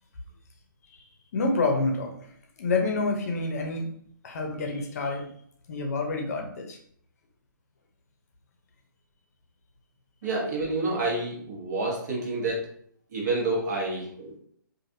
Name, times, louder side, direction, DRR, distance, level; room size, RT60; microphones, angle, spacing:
voice 1, 1.3-3.9 4.2-5.3 5.7-6.8, left 3 dB, 45° left, 2 dB, 0.6 m, -28 dB
voice 2, 10.2-12.6 13.1-14.3, right 2 dB, 55° right, -2 dB, 1.2 m, -28 dB
3.1 x 2.5 x 2.6 m, 0.63 s
hypercardioid pair, 155°, 11 cm